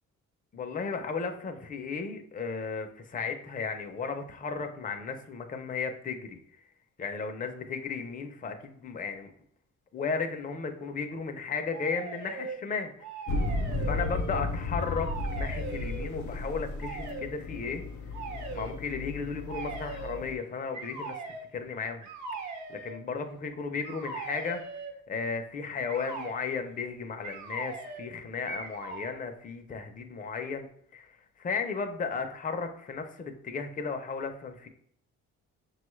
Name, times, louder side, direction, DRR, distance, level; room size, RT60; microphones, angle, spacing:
voice 1, 0.5-6.6 7.0-9.3 9.9-12.9 13.5-13.6 13.9-17.8 18.5-22.1 22.4-24.6 25.1-34.7, left 5 dB, 25° left, 5 dB, 0.5 m, -35 dB
sound 1, 11.7-12.6 13.0-14.5 14.8-16.1 16.8-17.3 18.1-18.8 19.5-20.2 20.7-21.5 22.0-23.0 23.8-25.0 25.9-26.4 27.2-28.1 28.4-29.1, right 4 dB, 70° right, 0.9 m, -40 dB
sound 2, 13.3-20.3, left 2 dB, 75° left, 0.6 m, -34 dB
5.7 x 2.3 x 3.1 m, 0.66 s
cardioid pair, 90°, 30 cm